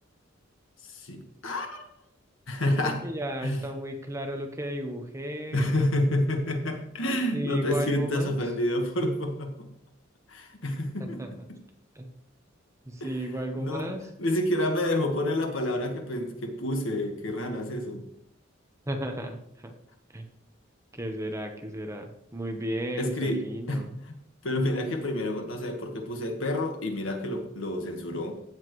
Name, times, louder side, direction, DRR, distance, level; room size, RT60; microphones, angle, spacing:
voice 1, 0.8-1.9 2.5-3.0 3.4-3.6 5.5-9.7 10.3-11.2 11.5-11.6 13.0-13.1 13.6-18.0 23.0-23.4 23.7-24.1 24.4-28.3, left 1 dB, 80° left, 4 dB, 1.6 m, -29 dB
voice 2, 2.6-5.7 7.3-8.4 11.0-11.4 11.9-12.1 12.9-14.1 18.9-19.7 20.1-20.3 20.9-23.9, equal, 15° right, 4 dB, 1.1 m, -34 dB
15.5 x 7.4 x 3.2 m, 0.76 s
head